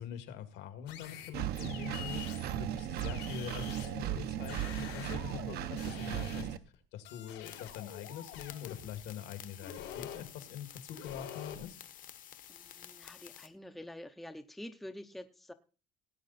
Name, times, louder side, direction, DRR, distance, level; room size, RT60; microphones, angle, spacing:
voice 1, 0.0-2.2 2.6-6.5 6.9-11.8, left 9 dB, 70° left, 9 dB, 2.0 m, -44 dB
sound 1, 0.9-2.6 3.0-6.7 7.0-9.0 9.6-10.3 10.9-11.6, left 10 dB, 90° left, 4.0 m, -47 dB
Engine, 1.3-6.6, right 11 dB, 55° right, 0.9 m, -36 dB
sound 2, 7.4-13.5, left 10 dB, 45° left, 1.2 m, -52 dB
voice 2, 12.5-15.5, left 1 dB, ahead, 8 dB, 0.7 m, -47 dB
18.0 x 8.9 x 4.1 m, 0.34 s
cardioid pair, 160°, 19 cm